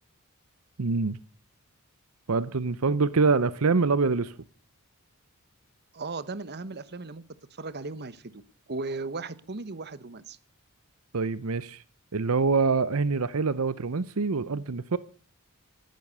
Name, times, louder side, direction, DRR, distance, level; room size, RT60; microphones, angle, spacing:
voice 1, 0.8-1.2 2.3-4.4 11.1-11.8 12.1-15.0, right 4 dB, 70° right, 0.7 m, -25 dB
voice 2, 5.9-7.2 7.5-8.4 8.7-10.4, right 3 dB, 50° right, 1.1 m, -36 dB
17.0 x 12.0 x 6.8 m
head